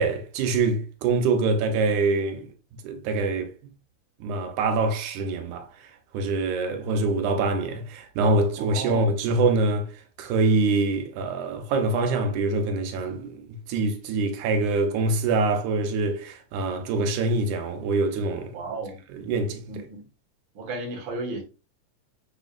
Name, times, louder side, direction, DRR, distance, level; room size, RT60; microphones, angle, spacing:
voice 1, 0.0-2.5 2.8-3.5 4.2-9.9 10.2-18.5 19.1-19.8, right 3 dB, 90° right, 2.3 m, -25 dB
voice 2, 8.6-9.1 18.5-19.0 19.7-20.1 20.5-21.4, right 2 dB, 55° right, 1.7 m, -34 dB
5.6 x 4.0 x 2.4 m
omnidirectional pair, 3.4 m